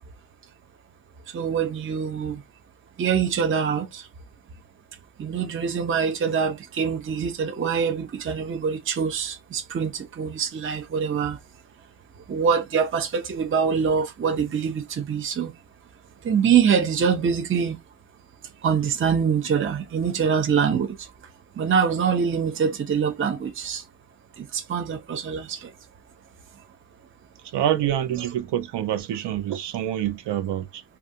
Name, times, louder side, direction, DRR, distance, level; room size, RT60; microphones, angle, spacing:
voice 1, 1.3-2.4 3.0-4.0 5.2-11.4 12.3-15.5 16.2-17.8 18.6-20.9 21.6-23.8 24.4-25.7 28.2-28.3, right 6 dB, 30° right, 0.5 m, -24 dB
voice 2, 27.5-30.8, right 11 dB, 85° right, 0.6 m, -26 dB
2.4 x 2.3 x 2.7 m
cardioid pair, 75°, 40 cm